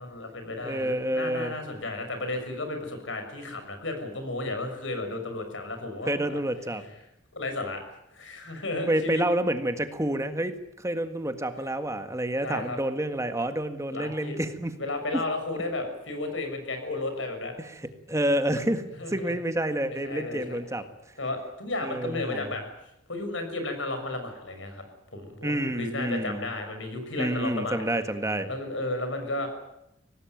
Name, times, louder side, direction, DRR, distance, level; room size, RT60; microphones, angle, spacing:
voice 1, 0.0-6.4 7.3-7.8 8.1-9.2 12.4-12.8 13.9-14.4 14.8-17.5 19.0-19.3 19.9-20.6 21.2-22.6 23.1-24.8 25.1-27.8 28.5-29.5, left 2 dB, 80° left, 6 dB, 6.7 m, -33 dB
voice 2, 0.6-1.5 6.1-6.8 8.9-14.7 17.6-17.7 18.1-20.8 21.8-22.5 25.4-26.5 27.2-28.5, right 1 dB, 15° right, 8 dB, 1.7 m, -28 dB
24.5 x 18.5 x 9.3 m, 0.85 s
head